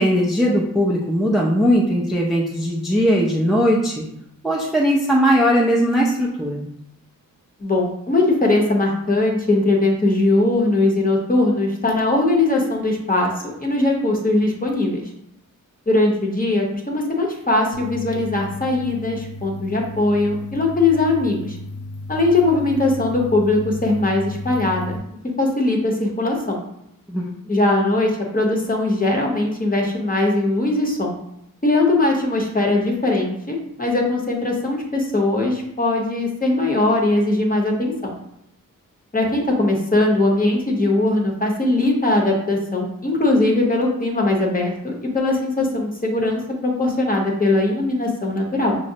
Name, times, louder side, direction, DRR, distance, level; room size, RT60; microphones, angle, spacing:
voice 1, 0.0-4.0 4.4-6.7 27.1-27.3, equal, ahead, -3 dB, 0.4 m, -19 dB
voice 2, 7.6-13.3 13.6-15.0 15.9-21.6 22.1-25.0 25.4-26.6 27.5-31.1 31.6-38.1 39.1-48.8, left 2 dB, 25° left, -1 dB, 0.8 m, -20 dB
sound 1, 17.7-25.0, left 2 dB, 70° left, 0.6 m, -34 dB
5.9 x 2.0 x 2.7 m, 0.77 s
wide cardioid pair, 130°, 33 cm